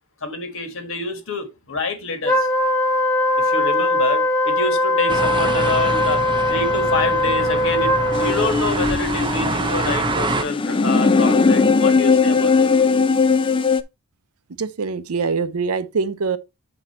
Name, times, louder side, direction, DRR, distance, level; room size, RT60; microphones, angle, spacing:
voice 1, 0.2-2.5 3.4-12.7, left 3 dB, 60° left, 1.7 m, -27 dB
Wind instrument woodwind instrument, 2.2-8.6, left 1 dB, 5° left, 1.5 m, -20 dB
sound 1, 5.1-10.4, right 2 dB, 20° right, 0.6 m, -26 dB
sound 2, 8.1-13.8, left 4 dB, 25° left, 0.4 m, -19 dB
voice 2, 14.6-16.4, right 5 dB, 75° right, 0.6 m, -23 dB
7.7 x 4.3 x 4.2 m
head